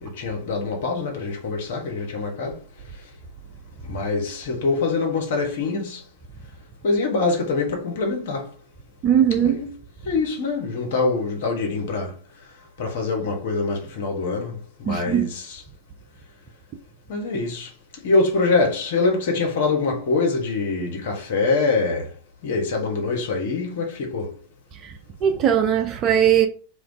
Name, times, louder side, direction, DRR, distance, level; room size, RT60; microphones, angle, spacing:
voice 1, 0.0-2.6 3.8-6.0 6.8-8.5 9.3-9.7 10.0-12.1 12.8-15.6 17.1-17.7 18.0-22.1 22.4-24.3, left 3 dB, 55° left, 0.8 m, -24 dB
voice 2, 9.0-9.5 14.9-15.3 24.8-24.9 25.2-26.5, right 9 dB, 35° right, 0.4 m, -19 dB
2.2 x 2.2 x 3.8 m
figure-of-eight pair, 90°, 0 cm